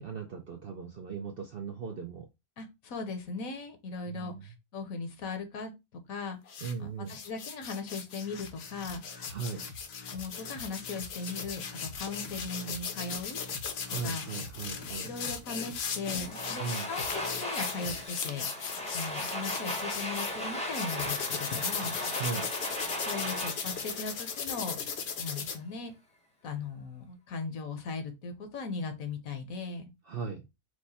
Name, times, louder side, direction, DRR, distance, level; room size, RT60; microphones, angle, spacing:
voice 1, 0.0-2.3 4.1-4.4 6.6-7.1 9.3-9.6 13.9-15.1 16.6-16.9 22.1-22.5 30.1-30.4, right 6 dB, 60° right, 0.6 m, -38 dB
voice 2, 2.6-6.4 6.8-9.0 10.1-13.4 14.0-14.2 15.0-18.6 18.9-22.0 23.0-24.8 25.2-25.9 26.4-29.9, left 4 dB, 70° left, 1.3 m, -38 dB
sound 1, 6.5-6.7 7.1-20.3 20.7-25.6, left 6 dB, 55° left, 0.8 m, -37 dB
sound 2, 8.2-16.7 17.0-18.1, left 3 dB, 90° left, 1.3 m, -47 dB
Domestic sounds home sounds, 16.1-25.0, equal, 5° left, 0.6 m, -37 dB
4.8 x 2.1 x 4.1 m
omnidirectional pair, 1.5 m